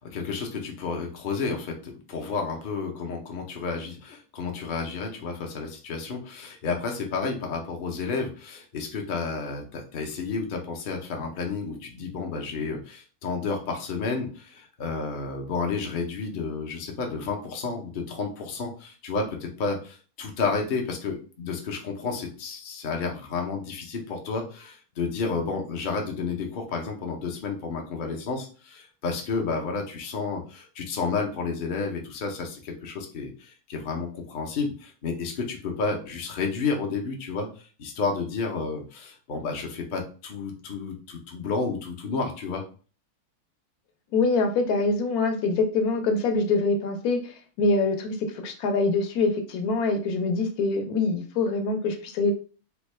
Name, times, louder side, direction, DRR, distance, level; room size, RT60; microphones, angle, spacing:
voice 1, 0.0-37.5 37.8-42.6, left 4 dB, 50° left, 1 dB, 0.6 m, -31 dB
voice 2, 44.1-48.2 48.4-52.3, left 3 dB, 75° left, 5 dB, 1.1 m, -24 dB
3.5 x 2.2 x 3.2 m, 0.38 s
omnidirectional pair, 1.6 m